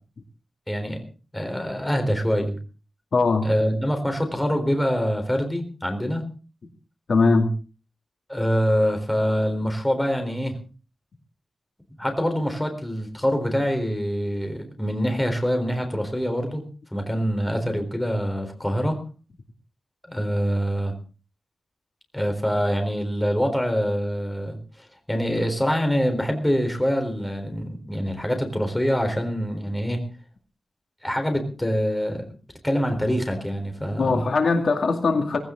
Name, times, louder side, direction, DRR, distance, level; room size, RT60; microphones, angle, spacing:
voice 1, 0.7-1.0 1.3-2.6 3.4-6.2 8.3-10.6 12.0-16.6 16.9-19.0 20.0-20.9 22.1-30.0 31.0-32.2 32.6-34.2, equal, 10° left, 5 dB, 4.0 m, -25 dB
voice 2, 3.1-3.5 7.1-7.5 34.0-35.4, left 3 dB, 65° left, 5 dB, 2.4 m, -20 dB
18.0 x 17.0 x 3.9 m, 0.36 s
wide cardioid pair, 160°, 0 cm